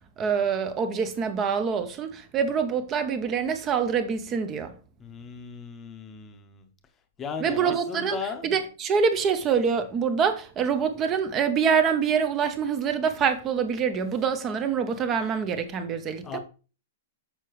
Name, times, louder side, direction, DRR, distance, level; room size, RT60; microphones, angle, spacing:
voice 1, 0.2-4.7 7.4-8.2 8.4-16.4, right 6 dB, 20° right, 0.6 m, -25 dB
voice 2, 5.0-6.7 7.2-8.5 16.2-16.4, left 5 dB, 15° left, 0.8 m, -36 dB
6.6 x 5.8 x 3.0 m
hypercardioid pair, 165°, 0 cm